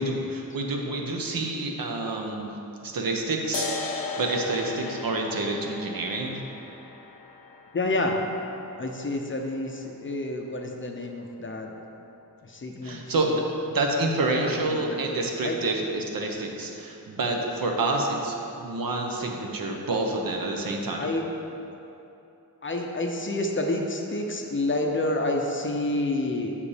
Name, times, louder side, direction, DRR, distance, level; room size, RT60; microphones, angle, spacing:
voice 1, 0.0-2.4 2.8-6.4 12.8-21.1, right 2 dB, 65° right, 1 dB, 0.9 m, -28 dB
sound 1, 3.5-10.5, left 4 dB, 70° left, 0.6 m, -37 dB
voice 2, 7.7-8.2 8.8-11.7 12.4-13.4 14.2-15.1 15.4-15.6 20.9-21.2 22.6-26.6, left 2 dB, 35° left, 2 dB, 0.5 m, -29 dB
7.1 x 5.1 x 4.9 m, 2.9 s
wide cardioid pair, 165°, 37 cm